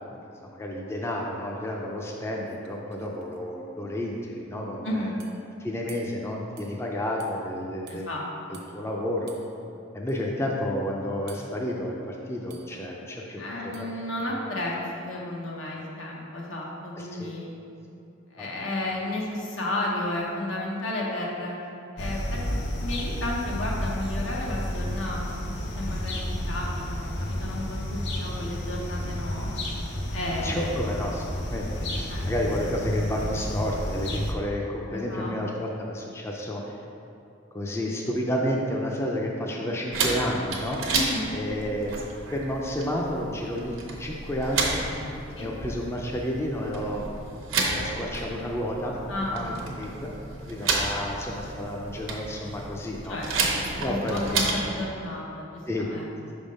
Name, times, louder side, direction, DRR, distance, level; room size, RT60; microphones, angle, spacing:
voice 1, 0.0-5.1 5.6-8.1 8.7-9.4 9.9-13.9 17.0-17.3 18.4-18.5 30.4-36.8 37.5-40.8 41.3-41.9 42.3-45.0 45.4-47.1 47.7-48.9 49.3-50.1 50.4-53.2 53.8-54.2 54.6-54.7 55.7-55.9, equal, 15° left, -1 dB, 0.4 m, -31 dB
sound 1, 2.1-2.2 2.4-3.4 5.2-5.4 5.9-6.2 6.6-6.7 7.2-7.3 7.9-8.0 8.5-8.7 9.3-9.5 10.1-10.2 11.3-11.6 12.5-12.8 13.7-14.0, right 6 dB, 55° right, 0.6 m, -50 dB
voice 2, 4.8-5.1 7.9-8.2 8.5-8.6 13.4-17.5 18.3-21.6 21.9-29.5 30.1-30.8 32.1-32.3 34.9-35.3 40.9-41.3 45.4-45.5 49.1-49.7 53.1-56.1, left 1 dB, 80° left, -3 dB, 1.1 m, -33 dB
sound 2, 22.0-34.3, left 1 dB, 60° left, 0.6 m, -31 dB
sound 3, 39.9-54.7, right 3 dB, 90° right, 0.8 m, -31 dB
5.3 x 3.5 x 5.2 m, 2.8 s
head